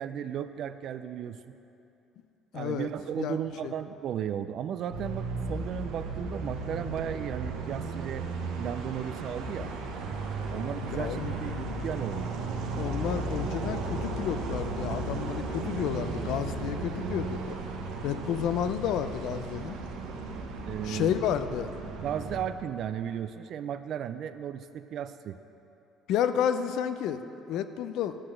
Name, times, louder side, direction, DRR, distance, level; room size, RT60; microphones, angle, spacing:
voice 1, 0.0-1.5 2.5-8.3 8.6-9.7 10.5-12.3 20.6-21.1 22.0-25.4, right 9 dB, 60° right, 10 dB, 0.4 m, -35 dB
voice 2, 2.5-2.9 3.2-3.4 3.6-3.7 10.9-11.4 12.8-17.6 18.0-19.8 20.8-21.7 26.1-27.2 27.5-28.2, left 9 dB, 70° left, 10 dB, 0.5 m, -31 dB
sound 1, 4.9-22.4, right 3 dB, 85° right, 1.1 m, -35 dB
11.5 x 5.8 x 7.6 m, 2.9 s
supercardioid pair, 75°, 0 cm